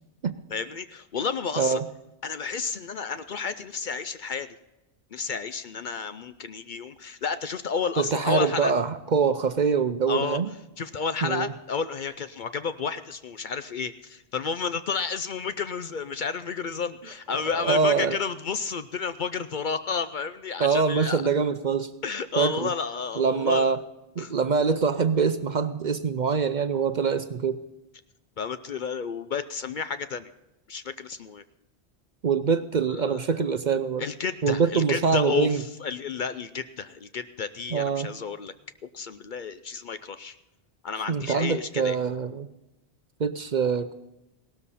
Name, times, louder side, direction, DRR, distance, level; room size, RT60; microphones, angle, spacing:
voice 1, 0.5-1.8 2.2-4.5 5.1-8.7 10.1-10.4 10.8-21.2 22.0-23.8 24.2-24.3 28.4-30.3 30.7-31.4 32.9-33.2 34.0-38.5 38.9-40.4 40.8-42.0, left 5 dB, 55° left, 12 dB, 0.6 m, -31 dB
voice 2, 1.6-1.9 8.0-10.5 11.2-11.5 17.6-18.2 20.6-21.9 22.4-22.7 23.2-23.8 24.2-27.6 32.2-34.0 34.4-35.6 37.7-38.1 41.1-42.5 43.2-43.9, right 5 dB, 50° right, 11 dB, 0.6 m, -24 dB
17.5 x 13.0 x 4.1 m, 0.96 s
omnidirectional pair, 1.1 m